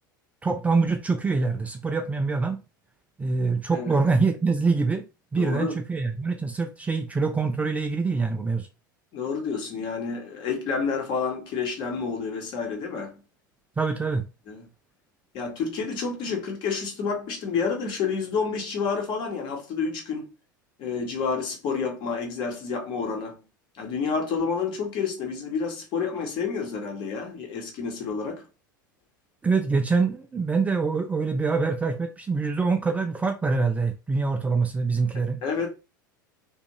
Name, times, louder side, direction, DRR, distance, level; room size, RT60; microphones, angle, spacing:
voice 1, 0.4-2.6 3.2-5.0 5.3-8.7 13.8-14.2 29.4-35.4, right 4 dB, 10° right, 0.3 m, -25 dB
voice 2, 5.4-5.8 9.1-13.1 14.5-14.7 15.3-20.3 20.8-23.4 23.7-28.5 35.1-35.7, left 5 dB, 45° left, 1.0 m, -29 dB
2.5 x 2.3 x 2.9 m
figure-of-eight pair, 80°, 11 cm